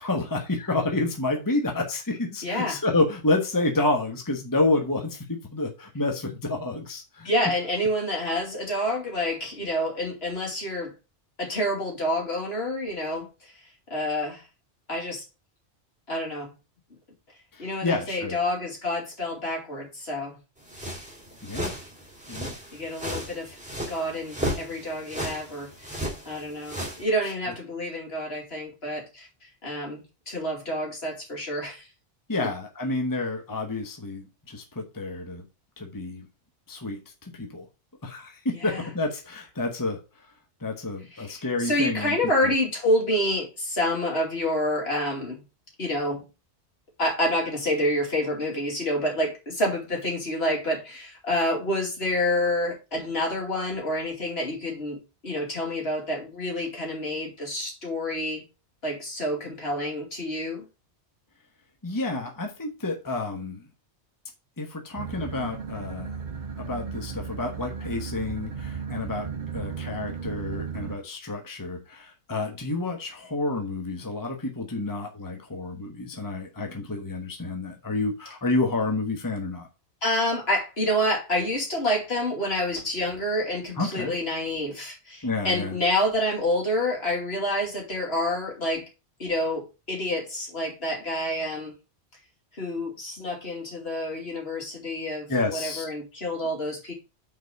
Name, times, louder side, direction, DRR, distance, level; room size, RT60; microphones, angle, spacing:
voice 1, 0.0-7.3 17.5-18.4 21.4-21.7 22.3-22.5 27.2-27.3 32.3-35.4 35.8-36.3 36.7-37.7 38.0-40.0 40.6-42.2 42.4-42.5 61.8-63.6 64.6-66.2 66.6-69.3 69.5-79.7 83.8-84.1 85.2-85.8 95.3-95.9, left 2 dB, 15° left, 3 dB, 1.2 m, -29 dB
voice 2, 2.4-2.8 7.2-10.9 11.4-13.5 13.9-14.4 14.9-15.2 16.1-16.5 17.6-20.4 22.7-23.6 23.9-29.3 29.6-31.9 32.4-32.5 38.5-38.9 41.1-45.4 45.8-46.2 47.0-58.4 58.8-60.7 80.0-88.8 89.2-91.7 92.5-96.9, left 1 dB, 55° left, 0 dB, 2.8 m, -28 dB
sound 1, 20.7-27.0, equal, 5° right, 2.7 m, -35 dB
sound 2, 65.0-71.0, right 6 dB, 45° right, 0.8 m, -35 dB
6.0 x 4.7 x 6.6 m, 0.30 s
omnidirectional pair, 1.2 m